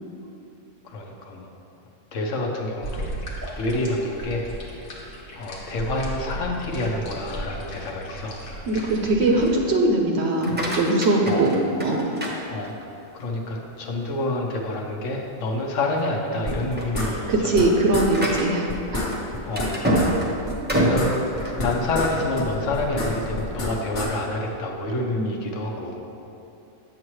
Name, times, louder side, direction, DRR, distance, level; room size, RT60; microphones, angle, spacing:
voice 1, 0.8-1.5 2.1-3.1 3.6-4.5 5.3-8.4 11.2-11.5 12.5-12.7 13.1-17.8 19.4-19.8 20.7-26.0, left 2 dB, 70° left, 0 dB, 1.1 m, -28 dB
sound 1, 2.8-9.5, equal, 90° left, 1.5 m, -36 dB
voice 2, 8.7-12.1 17.3-19.1 25.2-25.3, right 2 dB, 60° right, 1 dB, 0.8 m, -21 dB
sound 2, 10.2-13.1 13.6-14.0 14.5-14.6 15.0-15.2 15.8-16.1 16.4-22.3, right 1 dB, 10° right, 0.6 m, -28 dB
sound 3, 16.5-17.7 17.9-18.1 18.3-18.4 18.7-20.1 20.4-22.1 22.4-24.1, left 1 dB, 40° left, 1.0 m, -29 dB
7.4 x 6.9 x 3.1 m, 2.8 s
omnidirectional pair, 1.4 m